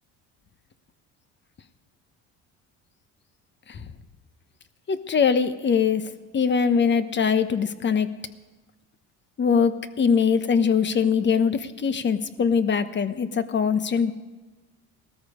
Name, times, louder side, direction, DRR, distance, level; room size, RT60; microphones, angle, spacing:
voice 1, 4.9-6.0 6.3-8.1 9.4-14.1, left 6 dB, 35° left, 11 dB, 1.0 m, -22 dB
18.0 x 13.5 x 5.0 m, 1.2 s
supercardioid pair, 95°, 32 cm